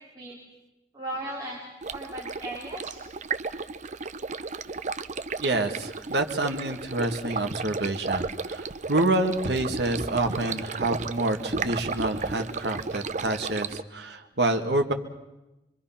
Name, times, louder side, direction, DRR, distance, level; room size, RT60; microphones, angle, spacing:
voice 1, 0.9-1.6 1.9-3.0, right 1 dB, 25° right, -4 dB, 3.7 m, -36 dB
Stream, 1.8-13.8, right 4 dB, 45° right, 0.7 m, -34 dB
voice 2, 5.4-14.9, right 2 dB, 70° right, 6 dB, 1.9 m, -27 dB
25.5 x 24.0 x 5.8 m, 0.98 s
head